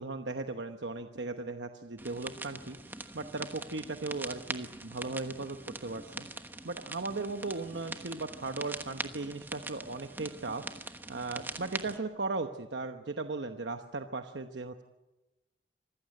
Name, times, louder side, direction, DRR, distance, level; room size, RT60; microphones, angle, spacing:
voice 1, 0.0-2.8 3.1-6.3 6.6-10.6 11.1-14.8, right 3 dB, 65° right, 6 dB, 1.0 m, -37 dB
sound 1, 2.0-12.0, right 2 dB, 10° right, 1.1 m, -43 dB
26.0 x 16.0 x 9.8 m, 1.1 s
head